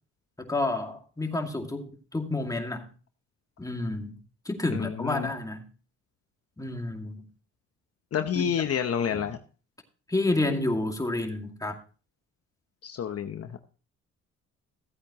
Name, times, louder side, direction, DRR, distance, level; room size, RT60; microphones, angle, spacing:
voice 1, 0.4-2.8 3.6-4.2 4.5-5.6 6.6-7.2 8.3-8.7 9.1-9.3 10.1-11.8, left 2 dB, 10° left, 3 dB, 2.3 m, -30 dB
voice 2, 4.7-5.3 8.1-9.4 12.8-13.6, left 8 dB, 50° left, 7 dB, 0.9 m, -29 dB
15.5 x 8.5 x 3.0 m, 0.37 s
cardioid pair, 90°, 30 cm